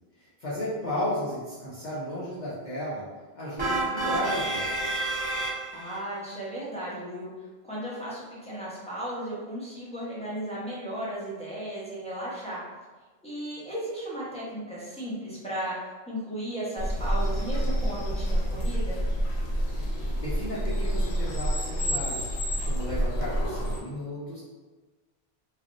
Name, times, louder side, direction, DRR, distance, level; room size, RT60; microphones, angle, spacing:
voice 1, 0.2-3.0 3.3-5.0 20.2-22.3 22.6-24.4, left 1 dB, 50° left, -9 dB, 0.7 m, -34 dB
sound 1, 3.6-6.0, right 2 dB, 30° right, 0.6 m, -29 dB
voice 2, 5.7-7.3 7.6-12.6 13.2-15.8 16.1-19.0, right 1 dB, 5° left, -8 dB, 0.7 m, -35 dB
sound 2, 16.8-23.8, equal, 90° left, 0.9 m, -28 dB
3.3 x 2.4 x 2.5 m, 1.3 s
omnidirectional pair, 1.1 m